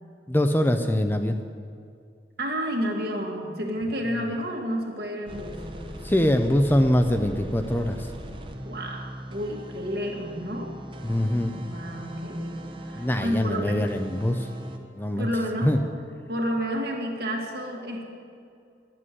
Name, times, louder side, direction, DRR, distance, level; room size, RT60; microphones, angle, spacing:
voice 1, 0.3-1.4 6.0-8.1 11.0-11.6 13.0-14.5 14.9-15.3 15.6-15.8, left 1 dB, 10° left, 6 dB, 0.5 m, -23 dB
voice 2, 2.4-5.7 8.7-10.8 11.7-13.9 15.2-15.7 16.3-18.1, equal, 60° right, 1 dB, 1.9 m, -30 dB
sound 1, 5.3-14.8, right 1 dB, 30° right, 0.9 m, -40 dB
11.0 x 7.6 x 9.7 m, 2.3 s
head